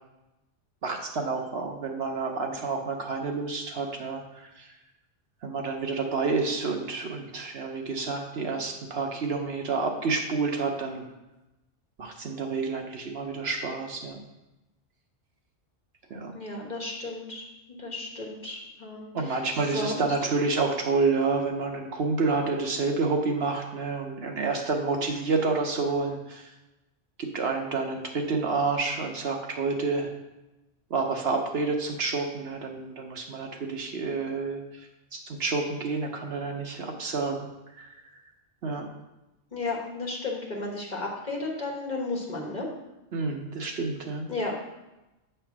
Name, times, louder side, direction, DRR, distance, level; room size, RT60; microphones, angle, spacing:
voice 1, 0.8-4.7 5.4-11.1 12.0-14.2 16.1-16.3 19.1-26.5 27.2-30.1 30.9-34.6 35.1-38.0 38.6-38.9 43.1-44.3, right 4 dB, 60° right, 2 dB, 1.0 m, -29 dB
voice 2, 16.3-17.4 17.8-20.0 39.5-42.7 44.3-44.5, left 2 dB, 40° left, -2 dB, 1.4 m, -33 dB
8.1 x 3.4 x 5.9 m, 0.99 s
omnidirectional pair, 1.2 m